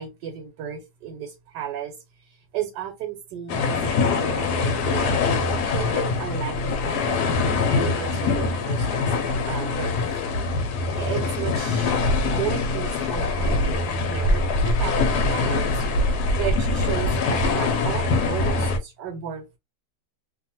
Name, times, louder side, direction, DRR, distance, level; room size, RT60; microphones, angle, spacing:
voice 1, 0.0-5.1 5.6-10.0 11.0-11.9 12.3-19.6, right 9 dB, 80° right, 1.3 m, -34 dB
sound 1, 3.5-18.8, left 3 dB, 75° left, 1.1 m, -23 dB
2.6 x 2.4 x 2.8 m
omnidirectional pair, 1.8 m